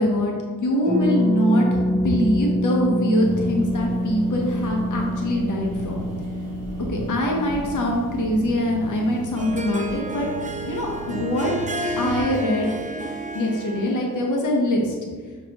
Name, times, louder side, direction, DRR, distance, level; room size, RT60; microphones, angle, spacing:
voice 1, 0.0-6.0 6.9-10.3 10.6-11.5 12.0-12.7 13.3-14.9, left 1 dB, 70° left, 0 dB, 1.0 m, -23 dB
Harp, 0.8-10.5 10.7-10.8 11.0-11.3, equal, 20° left, 0.8 m, -27 dB
sound 1, 3.2-12.2, right 3 dB, 50° right, 1.7 m, -36 dB
Harp 2, 9.0-14.3, right 2 dB, 25° right, 0.4 m, -31 dB
6.4 x 5.1 x 2.9 m, 1.5 s
wide cardioid pair, 110°, 32 cm